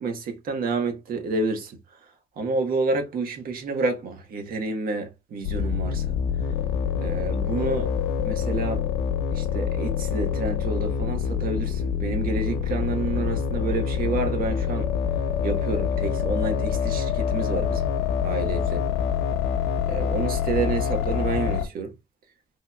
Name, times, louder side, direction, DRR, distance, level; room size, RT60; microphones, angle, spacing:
voice 1, 0.0-6.2 6.9-7.9 8.2-8.9 9.3-14.9 15.4-17.9 18.2-18.8 19.8-21.9, right 3 dB, 60° right, 1.3 m, -29 dB
sound 1, 5.4-21.7, left 7 dB, 90° left, 0.7 m, -26 dB
3.5 x 3.0 x 2.2 m
cardioid pair, 110°, 17 cm